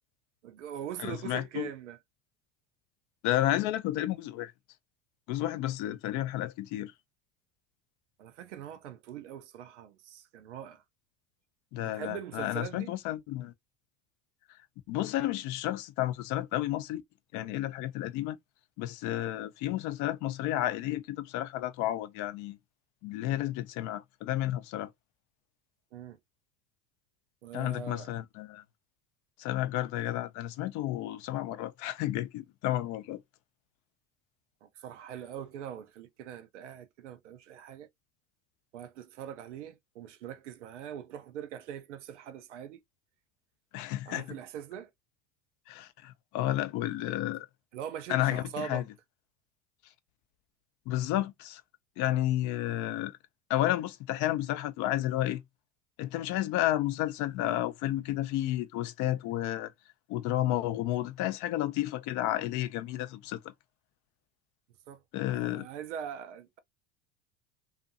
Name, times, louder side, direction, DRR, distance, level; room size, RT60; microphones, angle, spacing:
voice 1, 0.4-2.0 8.2-10.8 11.8-12.9 25.9-26.2 27.4-28.1 34.6-37.9 38.7-42.8 44.1-44.9 47.7-48.8 64.9-65.0 65.3-66.6, right 9 dB, 90° right, 0.6 m, -42 dB
voice 2, 1.0-1.7 3.2-4.5 5.3-6.9 11.7-13.5 14.9-17.0 17.3-18.4 18.8-22.6 23.0-24.9 27.5-28.6 29.4-33.2 43.7-44.4 45.7-47.5 48.1-48.8 50.9-51.6 52.0-53.2 53.5-55.4 56.0-59.7 60.1-63.4 65.1-65.7, left 14 dB, 55° left, 0.5 m, -31 dB
2.6 x 2.5 x 2.5 m
hypercardioid pair, 85°, 35 cm